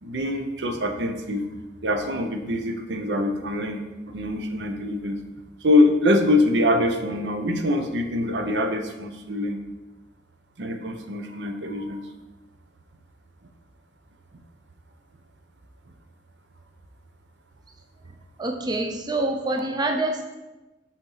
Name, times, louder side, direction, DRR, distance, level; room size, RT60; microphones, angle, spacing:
voice 1, 0.0-1.5 1.8-3.8 4.1-5.2 5.6-9.6 10.6-12.1, left 1 dB, 75° right, 5 dB, 0.7 m, -24 dB
voice 2, 18.4-20.2, right 2 dB, 25° right, 3 dB, 0.5 m, -26 dB
6.8 x 4.3 x 3.9 m, 1.1 s
head